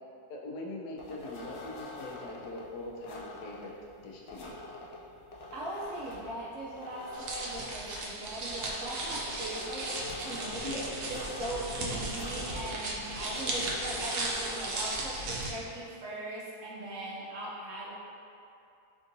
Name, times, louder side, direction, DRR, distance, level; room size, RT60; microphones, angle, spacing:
voice 1, 0.3-3.7 4.0-4.6 10.6-10.9, left 2 dB, 85° left, -3 dB, 1.2 m, -41 dB
sound 1, 1.0-15.4, left 2 dB, 70° left, 0.6 m, -45 dB
voice 2, 5.5-17.9, right 1 dB, 65° right, -6 dB, 0.9 m, -40 dB
sound 2, 7.1-15.5, right 2 dB, 85° right, 1.2 m, -36 dB
3.8 x 3.6 x 2.6 m, 2.6 s
omnidirectional pair, 1.6 m